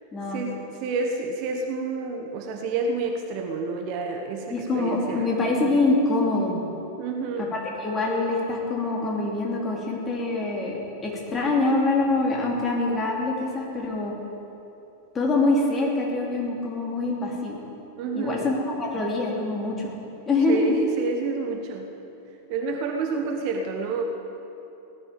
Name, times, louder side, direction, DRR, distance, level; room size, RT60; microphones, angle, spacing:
voice 1, 0.3-5.3 7.0-7.5 18.0-18.5 20.5-21.9 22.5-24.0, right 4 dB, 45° right, 3 dB, 1.3 m, -29 dB
voice 2, 4.5-6.6 7.4-14.1 15.1-17.6 18.1-19.9 20.3-20.6, left 2 dB, 20° left, -2 dB, 3.1 m, -25 dB
17.5 x 12.0 x 5.3 m, 2.9 s
figure-of-eight pair, 90°, 0 cm